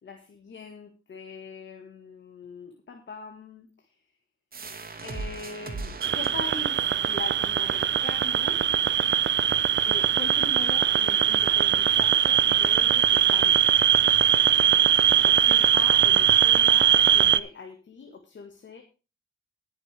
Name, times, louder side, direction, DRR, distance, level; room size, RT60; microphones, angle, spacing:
voice 1, 0.0-4.0 5.0-8.7 9.8-13.7 15.2-18.8, left 4 dB, 65° left, 4 dB, 1.8 m, -41 dB
sound 1, 4.5-9.9, right 3 dB, 45° right, 2.0 m, -41 dB
sound 2, 6.0-17.4, right 9 dB, 65° right, 0.6 m, -21 dB
20.0 x 6.7 x 3.4 m, 0.32 s
cardioid pair, 65°, 21 cm